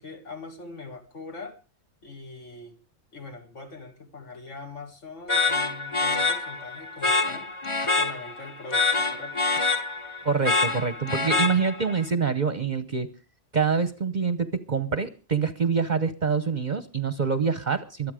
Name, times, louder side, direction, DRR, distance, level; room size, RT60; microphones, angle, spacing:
voice 1, 0.0-1.6 2.0-2.8 3.1-7.5 8.0-9.6, left 3 dB, 65° left, 4 dB, 2.4 m, -42 dB
sound 1, 5.3-12.0, left 3 dB, 25° left, 1.1 m, -26 dB
voice 2, 10.2-13.1 13.5-18.1, right 5 dB, 40° right, 12 dB, 0.9 m, -26 dB
24.0 x 8.6 x 5.0 m, 0.35 s
omnidirectional pair, 1.4 m